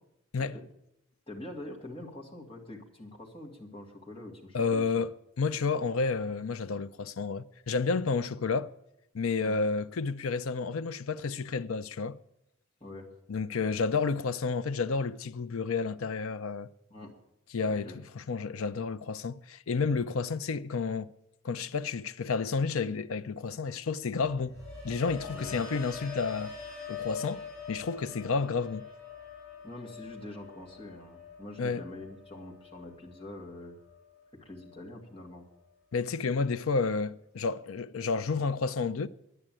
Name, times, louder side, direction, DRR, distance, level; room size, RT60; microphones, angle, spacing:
voice 1, 1.3-4.9 9.4-9.7 12.8-13.1 16.9-17.1 17.7-18.0 25.3-25.6 29.6-33.8 34.3-35.5, left 1 dB, 25° left, 2.4 m, -45 dB
voice 2, 4.5-8.7 9.1-12.2 13.3-16.7 17.5-21.1 21.4-24.6 24.8-26.5 26.9-28.9 31.6-31.8 35.9-39.1, left 4 dB, 80° left, 0.5 m, -31 dB
sound 1, 24.2-34.2 34.6-35.0, left 5 dB, 10° left, 5.8 m, -44 dB
11.0 x 9.7 x 8.9 m
head